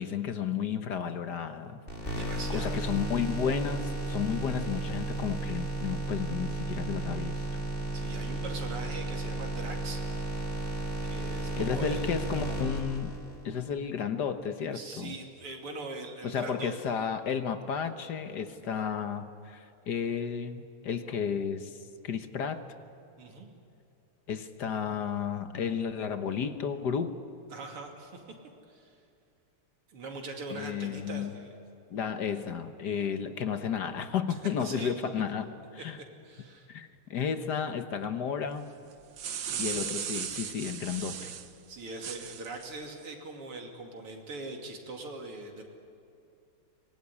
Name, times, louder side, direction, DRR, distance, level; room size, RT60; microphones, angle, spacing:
voice 1, 0.0-7.5 11.6-15.1 16.2-21.8 22.0-22.6 24.3-27.1 30.5-31.4 31.9-36.0 36.7-38.7 39.6-41.3, left 7 dB, 55° left, 9 dB, 1.6 m, -33 dB
sound 1, 1.9-13.5, right 2 dB, 25° left, 4.0 m, -34 dB
voice 2, 2.1-2.8 7.9-10.0 10.4-10.7 11.0-12.1 14.7-16.7 18.6-18.7 23.2-23.5 27.5-28.2 28.7-29.0 29.9-31.6 31.9-32.1 34.6-34.9 36.2-36.7 39.5-39.8 41.7-45.6, right 3 dB, 80° right, 2 dB, 3.6 m, -42 dB
sound 2, 38.9-41.5 42.0-42.7, right 8 dB, 65° right, 1.8 m, -36 dB
24.5 x 21.0 x 9.9 m, 2.6 s
omnidirectional pair, 2.4 m